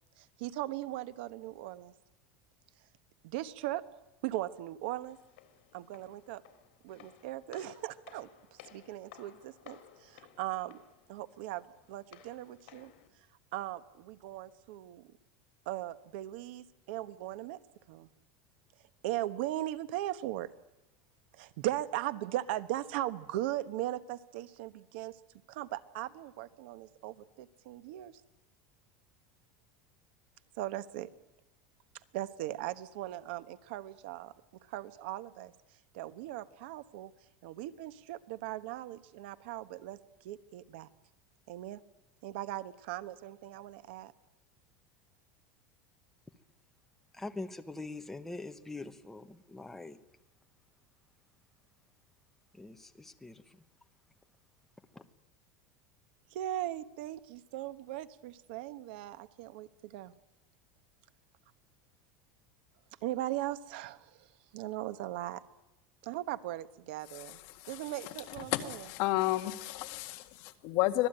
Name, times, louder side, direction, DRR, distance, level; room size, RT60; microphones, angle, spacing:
voice 1, 0.2-1.9 3.2-3.8 4.2-5.2 5.7-6.4 6.8-10.8 11.1-12.9 13.5-15.1 15.6-17.6 17.9-18.1 19.0-20.5 21.3-25.2 25.5-28.2 30.6-31.1 32.1-34.3 34.6-35.5 35.9-37.1 37.4-40.9 41.5-41.8 42.2-44.1 56.3-60.1 63.0-64.3 64.5-65.4 66.0-67.4 67.7-68.9, right 14 dB, 65° right, 1.1 m, -38 dB
Walk footsteps, 5.1-13.1, left 10 dB, 75° left, 4.0 m, -58 dB
voice 2, 47.2-50.0 52.6-53.4, left 2 dB, 5° left, 1.1 m, -43 dB
voice 3, 68.5-71.1, left 17 dB, 50° left, 1.9 m, -31 dB
25.0 x 18.0 x 9.0 m
supercardioid pair, 170°, 6 cm